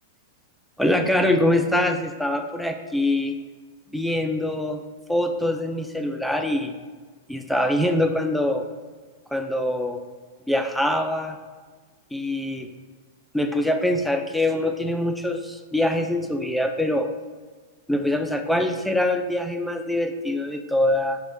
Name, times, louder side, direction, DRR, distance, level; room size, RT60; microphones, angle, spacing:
voice 1, 0.8-3.3 3.9-4.8 5.1-6.7 7.3-8.6 9.3-10.0 10.5-11.4 12.1-12.7 13.3-17.1 17.9-21.2, left 1 dB, ahead, 5 dB, 0.4 m, -24 dB
4.6 x 2.2 x 3.9 m, 1.4 s
hypercardioid pair, 120°, 0 cm